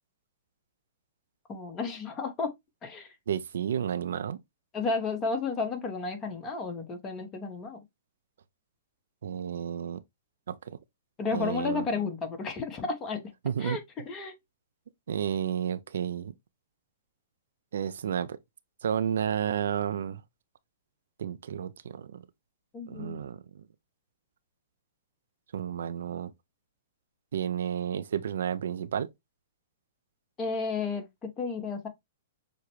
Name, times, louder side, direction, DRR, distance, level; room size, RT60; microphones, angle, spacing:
voice 1, 1.5-2.5 2.8-3.1 4.7-7.8 11.2-13.2 13.6-13.8 14.0-14.3 22.7-23.2 30.4-31.9, left 4 dB, 25° left, 1.0 m, -32 dB
voice 2, 3.3-4.4 9.2-10.0 10.5-10.8 11.3-11.9 13.4-13.8 15.1-16.3 17.7-18.4 18.8-20.2 21.2-22.2 22.9-23.4 25.5-26.3 27.3-29.1, right 8 dB, 70° right, 0.4 m, -31 dB
6.2 x 2.2 x 3.0 m
hypercardioid pair, 115°, 0 cm